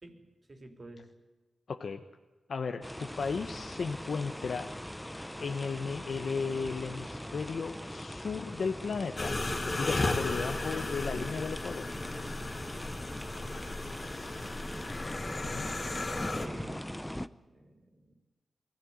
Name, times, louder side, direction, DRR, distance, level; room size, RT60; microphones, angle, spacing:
voice 1, 0.0-1.1 16.3-16.9 17.5-18.1, right 2 dB, 40° right, 5 dB, 3.7 m, -50 dB
voice 2, 1.7-2.0 2.5-4.7 5.4-11.9 15.4-15.7, left 5 dB, 70° left, 6 dB, 1.1 m, -35 dB
sound 1, 2.8-17.3, equal, 5° left, 0.8 m, -41 dB
sound 2, 9.2-16.5, left 2 dB, 40° left, 2.9 m, -35 dB
23.0 x 17.0 x 9.7 m, 1.2 s
wide cardioid pair, 85°, 0 cm